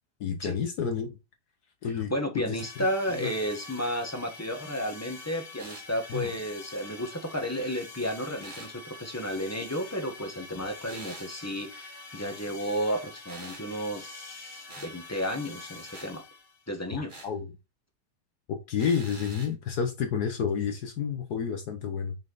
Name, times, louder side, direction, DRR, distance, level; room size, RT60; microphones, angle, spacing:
voice 1, 0.2-1.1 1.8-2.6 3.2-3.3 6.1-6.3 16.9-17.5 18.5-22.2, left 7 dB, 65° left, 1.4 m, -30 dB
voice 2, 1.9-16.2 16.7-17.1, equal, 10° left, 1.1 m, -32 dB
sound 1, 2.6-16.7, left 3 dB, 40° left, 1.2 m, -46 dB
sound 2, 5.6-5.9 8.4-8.7 10.9-11.3 13.3-13.7 14.7-15.0 15.9-16.1 17.1-17.3 18.8-19.5, right 2 dB, 30° right, 1.8 m, -45 dB
5.5 x 5.3 x 4.0 m
omnidirectional pair, 1.9 m